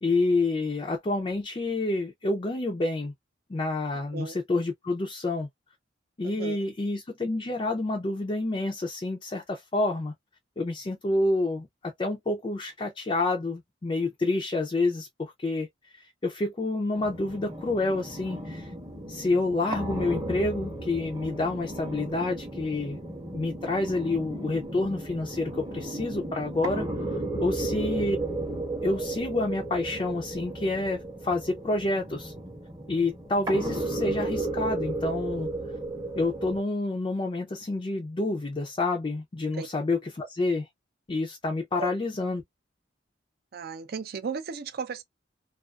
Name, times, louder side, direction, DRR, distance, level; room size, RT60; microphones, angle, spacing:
voice 1, 0.0-3.1 3.5-5.5 6.2-10.1 10.6-15.7 16.2-18.7 19.1-23.0 23.3-26.9 27.4-28.2 28.8-32.3 32.9-35.5 36.2-40.7 41.1-42.4, left 2 dB, 30° left, 0.4 m, -28 dB
voice 2, 6.2-6.6 39.5-39.7 41.7-41.9 43.5-45.0, right 5 dB, 55° right, 0.4 m, -35 dB
sound 1, 16.9-36.6, right 2 dB, 20° right, 0.7 m, -34 dB
2.3 x 2.3 x 2.3 m
head